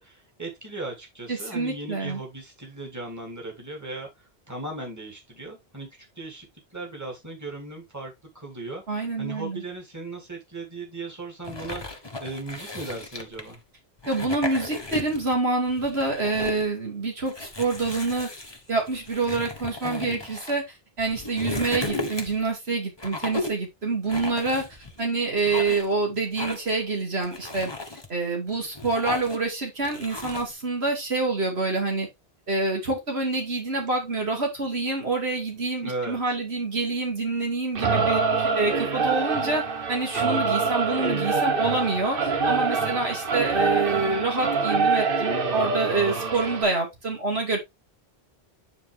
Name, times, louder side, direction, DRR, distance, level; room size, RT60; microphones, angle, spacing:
voice 1, 0.0-13.6 19.8-20.3 35.8-36.3 42.7-43.1, right 2 dB, 15° right, 2.7 m, -37 dB
voice 2, 1.3-2.2 8.9-9.6 14.1-18.3 18.7-20.6 21.0-24.7 25.0-27.7 28.1-32.1 32.5-39.6 39.9-47.6, right 3 dB, 80° right, 2.8 m, -27 dB
sound 1, 11.4-13.5 14.0-15.3 15.7-16.7 17.3-20.5 21.0-22.5 23.0-23.6 24.1-25.0 25.4-25.9 26.4-26.8 27.2-28.1 28.5-29.5 29.8-30.5, left 2 dB, 25° left, 1.3 m, -35 dB
Singing / Musical instrument, 37.7-46.6, right 4 dB, 60° right, 1.3 m, -25 dB
9.4 x 4.5 x 3.4 m
omnidirectional pair, 1.1 m